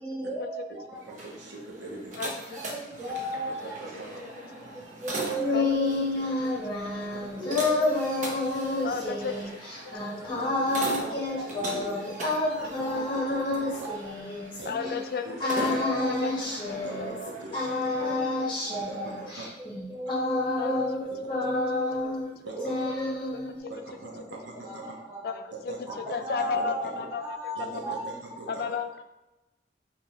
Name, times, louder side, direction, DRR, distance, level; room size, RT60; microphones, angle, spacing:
voice 1, 0.0-1.0 2.5-4.2 4.7-6.0 7.4-9.2 9.8-10.1 10.9-13.2 13.6-13.9 14.6-15.0 15.4-16.2 16.6-17.4 18.0-19.2 19.7-22.2 22.5-23.7 24.6-24.7 25.1-25.3 25.9-26.8 27.1-28.0 28.7-28.8, right 2 dB, 20° right, -6 dB, 1.1 m, -37 dB
sound 1, 0.9-19.5, right 1 dB, 45° right, 0.7 m, -41 dB
voice 2, 0.9-2.1 3.4-4.2 5.1-5.2 7.0-7.6 10.2-11.1 11.5-12.0 12.6-14.0 14.6-14.9 15.2-16.1 16.8-18.2 18.7-19.5 22.3-22.7 23.7-25.0 25.5-25.8 26.4-27.0 27.6-28.6, right 3 dB, 80° right, -2 dB, 0.9 m, -42 dB
voice 3, 2.2-2.6 3.6-3.7 4.2-4.3 5.5-5.8 6.7-6.8 8.8-9.4 12.9-13.0 14.7-16.8 18.6-18.7 20.6-20.8 23.3-23.4 25.2-25.8 26.1-28.0 28.5-29.0, left 6 dB, 55° left, 8 dB, 0.3 m, -34 dB
sound 2, 5.1-14.9 15.4-17.3 17.5-21.0 21.3-22.3 22.6-23.6, left 2 dB, 25° left, 0.9 m, -29 dB
4.8 x 2.8 x 2.7 m, 0.97 s
head